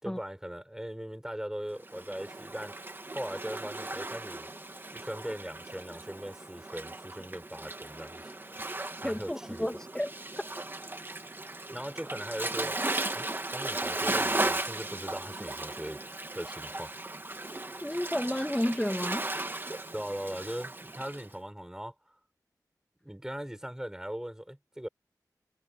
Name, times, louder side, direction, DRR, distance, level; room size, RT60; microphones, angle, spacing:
voice 1, 0.0-2.7 3.1-4.5 4.9-8.3 9.0-9.7 11.7-12.8 13.1-16.0 16.3-16.9 19.9-21.9 23.0-24.9, equal, 10° right, 6.9 m, -39 dB
Waves surf, 1.8-21.3, right 2 dB, 30° right, 2.0 m, -36 dB
voice 2, 9.0-10.1 17.8-19.3, left 1 dB, 10° left, 2.6 m, -31 dB
wide cardioid pair, 65°, 7 cm